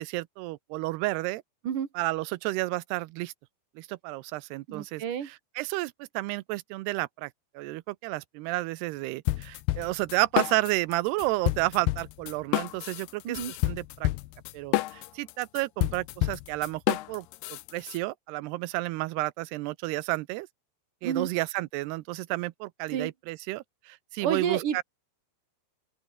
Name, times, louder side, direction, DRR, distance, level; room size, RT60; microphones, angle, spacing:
voice 1, 0.0-1.4 2.0-3.3 3.8-13.4 13.6-14.1 14.5-20.5 21.0-24.8, right 20 dB, 85° right, 2.8 m, -31 dB
voice 2, 4.7-5.3 13.2-13.5 21.0-21.3 22.9-23.1 24.2-24.8, right 8 dB, 55° right, 3.9 m, -29 dB
sound 1, 9.3-10.9 11.2-18.0, left 17 dB, 90° left, 2.9 m, -29 dB
open air
omnidirectional pair, 4.6 m